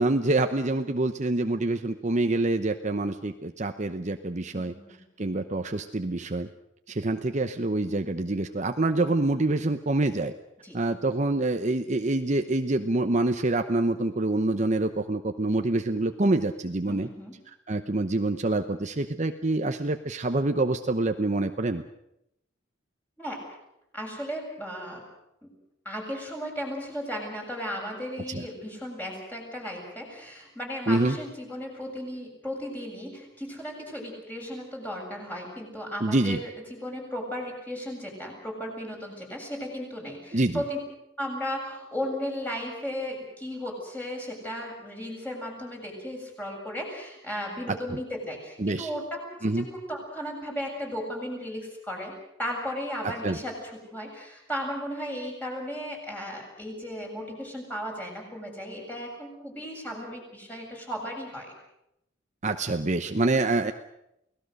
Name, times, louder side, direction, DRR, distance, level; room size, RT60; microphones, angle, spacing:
voice 1, 0.0-4.7 5.2-6.5 6.9-10.3 10.7-17.1 17.7-21.8 28.3-28.4 30.9-31.2 36.0-36.4 40.3-40.6 47.7-47.8 48.6-48.9 49.4-49.7 53.0-53.4 62.4-63.7, right 2 dB, 40° right, 7 dB, 0.9 m, -26 dB
voice 2, 4.5-5.0 10.6-10.9 16.9-17.4 23.2-23.4 23.9-25.0 25.4-25.5 25.8-40.8 41.2-52.1 52.4-61.5, equal, 10° left, -1 dB, 7.4 m, -35 dB
29.5 x 18.5 x 6.6 m, 0.83 s
head